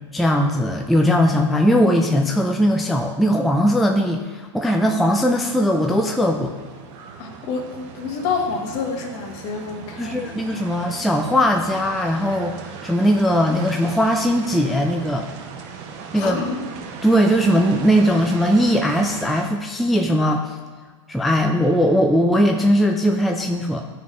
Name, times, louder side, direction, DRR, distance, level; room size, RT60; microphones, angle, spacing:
voice 1, 0.1-6.5 10.0-15.3 16.1-16.4 17.0-20.6 21.1-23.8, equal, ahead, 2 dB, 0.3 m, -19 dB
sound 1, 5.0-19.4, right 6 dB, 50° right, 0.8 m, -38 dB
voice 2, 7.2-10.3 16.1-16.6, left 5 dB, 50° left, 3 dB, 1.2 m, -28 dB
10.5 x 4.0 x 3.1 m, 1.4 s
hypercardioid pair, 120°, 16 cm